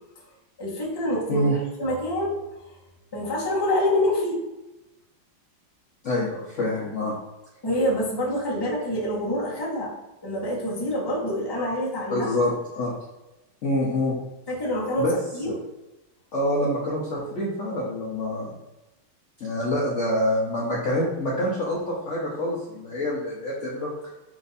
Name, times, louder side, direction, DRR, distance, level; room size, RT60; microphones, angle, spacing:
voice 1, 0.6-1.4 1.8-2.4 3.1-4.4 7.6-9.9 10.2-12.3 14.5-15.5, left 1 dB, 20° left, -5 dB, 0.7 m, -26 dB
voice 2, 6.0-7.1 12.1-12.9 13.6-14.1 15.0-15.1 15.5-15.6 16.3-18.5 19.4-23.9, left 1 dB, 70° left, -5 dB, 0.6 m, -26 dB
4.5 x 2.5 x 4.0 m, 1.0 s
omnidirectional pair, 2.3 m